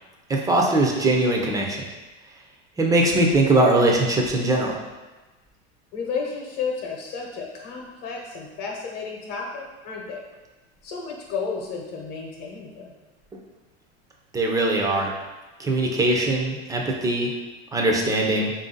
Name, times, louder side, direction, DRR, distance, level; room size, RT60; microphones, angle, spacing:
voice 1, 0.3-1.8 2.8-4.8 14.3-15.1 15.6-17.3 17.7-18.5, right 2 dB, 10° right, 0 dB, 0.4 m, -21 dB
voice 2, 5.9-10.2 10.8-12.9, left 5 dB, 60° left, -1 dB, 0.8 m, -32 dB
3.5 x 2.6 x 3.7 m, 1.2 s
supercardioid pair, 125°, 34 cm